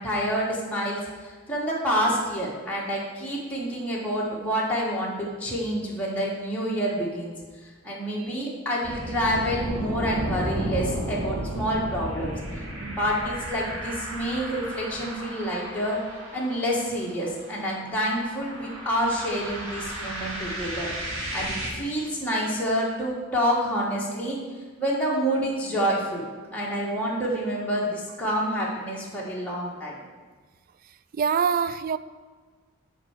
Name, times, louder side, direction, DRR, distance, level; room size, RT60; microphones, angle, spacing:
voice 1, 0.0-7.3 7.8-12.3 12.8-16.0 16.3-20.9 21.3-24.4 24.8-26.2 26.5-30.0, equal, 5° left, -6 dB, 1.5 m, -28 dB
sound 1, 8.8-21.7, right 1 dB, 70° right, 1.9 m, -34 dB
voice 2, 31.1-32.0, right 6 dB, 45° right, 14 dB, 0.3 m, -24 dB
7.6 x 4.6 x 6.5 m, 1.4 s
head